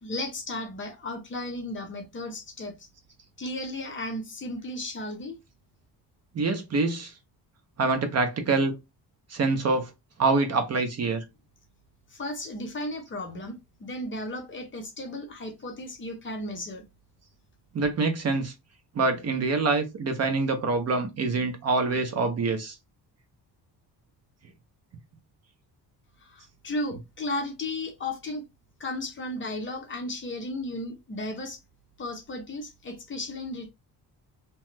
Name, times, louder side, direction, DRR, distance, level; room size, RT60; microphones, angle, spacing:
voice 1, 0.0-2.9 3.4-5.4 12.1-16.8 26.2-28.4 28.8-31.6 32.0-33.7, left 1 dB, 30° left, 0.6 m, -34 dB
voice 2, 6.3-7.1 7.8-8.8 9.3-9.9 10.2-11.2 17.7-18.5 19.0-22.8, right 3 dB, 40° right, 0.5 m, -25 dB
2.8 x 2.1 x 3.2 m
cardioid pair, 165°, 40 cm